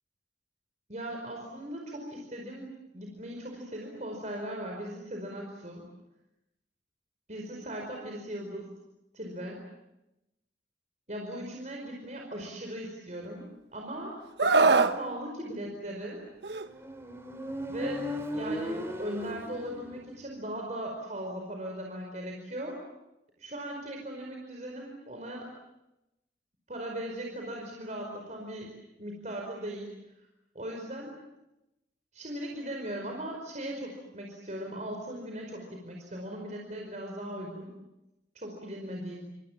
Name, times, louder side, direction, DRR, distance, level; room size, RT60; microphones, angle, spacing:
voice 1, 0.9-5.9 7.3-8.7 9.1-9.6 11.1-16.2 17.7-22.8 23.4-25.5 26.7-29.9 30.5-31.1 32.1-37.7 38.3-39.2, right 1 dB, 40° right, 0 dB, 5.0 m, -38 dB
Screaming, 14.4-15.0 16.4-16.7, right 3 dB, 75° right, 1.3 m, -22 dB
Motorcycle, 16.6-20.2, equal, 15° right, 3.3 m, -37 dB
28.0 x 27.5 x 7.4 m, 0.92 s
head